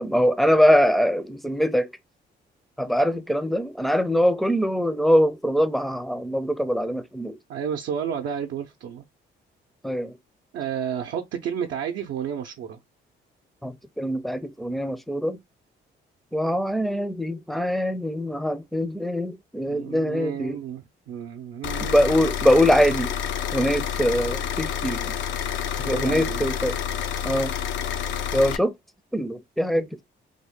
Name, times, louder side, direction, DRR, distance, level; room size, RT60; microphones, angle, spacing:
voice 1, 0.0-1.9 2.8-7.4 9.8-10.2 13.6-15.4 16.3-20.6 21.9-23.2 23.5-25.2 25.8-26.8 27.2-27.5 28.3-28.7 29.1-30.0, equal, ahead, 0.5 m, -23 dB
voice 2, 7.5-9.0 10.5-12.8 19.7-22.2 25.8-26.5, right 8 dB, 80° right, 0.6 m, -31 dB
sound 1, 21.6-28.6, left 8 dB, 70° left, 0.5 m, -29 dB
3.5 x 2.1 x 3.6 m
cardioid pair, 90°, 20 cm